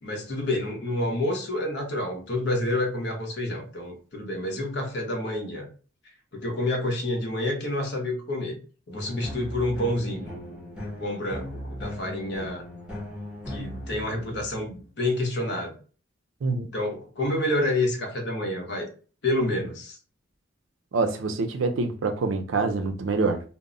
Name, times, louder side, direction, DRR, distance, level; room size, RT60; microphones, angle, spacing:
voice 1, 0.0-5.7 6.3-8.6 8.9-10.3 11.0-12.7 13.5-15.7 16.7-18.9 19.2-20.0, left 1 dB, 60° left, 0.7 m, -28 dB
sound 1, 8.9-14.9, left 1 dB, 5° right, 0.7 m, -37 dB
voice 2, 20.9-23.4, right 3 dB, 80° right, 0.5 m, -26 dB
2.1 x 2.0 x 3.6 m
head